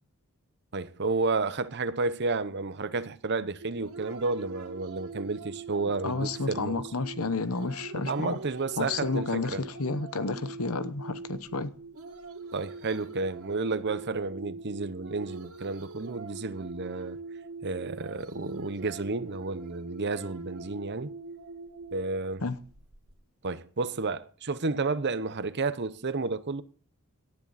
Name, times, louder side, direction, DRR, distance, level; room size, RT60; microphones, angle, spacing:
voice 1, 0.7-6.8 8.0-9.6 12.5-17.2 17.6-21.1 21.9-22.4 23.4-26.6, right 3 dB, 50° right, 0.8 m, -31 dB
sound 1, 3.6-23.1, right 3 dB, 85° right, 1.9 m, -43 dB
voice 2, 6.0-8.4 8.8-11.7 22.4-22.6, left 3 dB, 70° left, 1.0 m, -31 dB
18.0 x 9.8 x 4.1 m
head